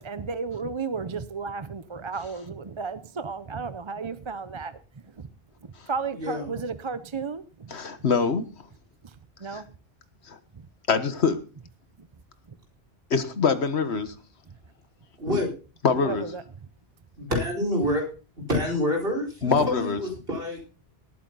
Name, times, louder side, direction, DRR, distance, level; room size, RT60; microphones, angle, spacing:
voice 1, 0.0-4.8 5.0-5.2 5.9-7.7 9.0-9.7 10.5-10.7 12.0-12.1 12.5-12.6 16.0-16.4, right 5 dB, 35° right, 13 dB, 0.6 m, -33 dB
voice 2, 6.1-6.5 15.2-15.5 17.2-18.0 18.5-20.7, left 1 dB, 60° right, 0 dB, 4.9 m, -27 dB
voice 3, 7.7-8.4 9.5-9.6 10.3-10.4 10.9-11.4 13.1-14.1 15.8-16.2 19.4-20.0, left 5 dB, 80° left, 10 dB, 1.6 m, -24 dB
19.0 x 9.0 x 4.0 m, 0.35 s
omnidirectional pair, 1.1 m